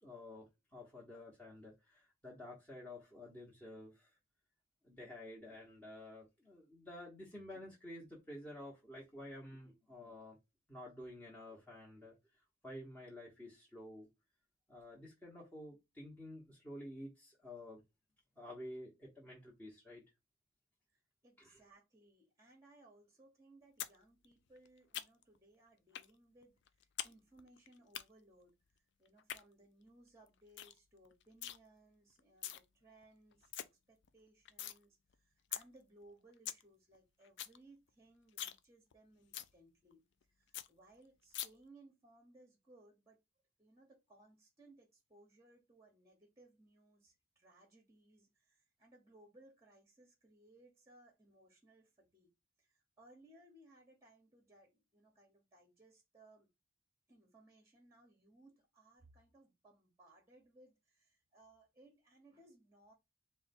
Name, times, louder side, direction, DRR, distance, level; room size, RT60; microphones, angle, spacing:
voice 1, 0.0-4.1 4.8-10.4 10.7-14.1 14.7-17.8 18.4-20.0 21.4-21.6, left 1 dB, 10° left, 1.0 m, -51 dB
voice 2, 20.9-40.0 40.3-43.2 43.6-52.3 52.6-56.5 57.1-62.9, right 2 dB, 15° right, 1.0 m, -64 dB
sound 1, 23.8-24.0 24.2-25.4 25.9-26.1 26.4-27.1 27.4-28.0 29.1-29.4 29.9-30.0 30.3-30.4 30.6-30.8 31.0-31.6 32.2-32.6 33.0-33.1 33.3-33.6 34.0-34.8 35.1-35.2 35.5-35.6 36.0-36.1 36.3-36.6 36.9-37.0 37.2-37.6 37.9-38.0 38.3-38.6 38.9-39.0 39.3-39.5 39.9-40.0 40.2-40.3 40.5-40.7 41.3-41.5, left 12 dB, 60° left, 0.4 m, -43 dB
4.2 x 2.2 x 4.2 m
head